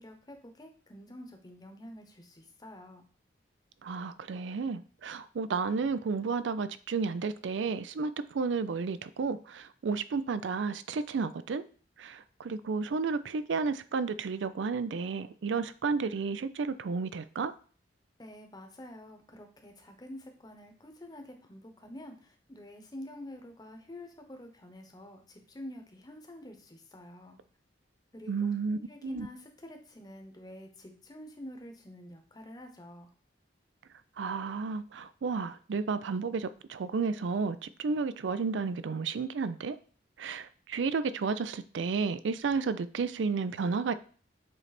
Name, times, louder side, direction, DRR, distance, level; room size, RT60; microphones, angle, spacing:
voice 1, 0.0-3.0 18.2-27.4 28.1-33.1, left 1 dB, 20° left, 5 dB, 1.0 m, -48 dB
voice 2, 3.8-11.6 12.0-17.5 28.3-29.3 34.2-39.8 40.2-43.9, right 4 dB, 90° right, 13 dB, 0.4 m, -32 dB
7.6 x 3.3 x 4.2 m, 0.41 s
head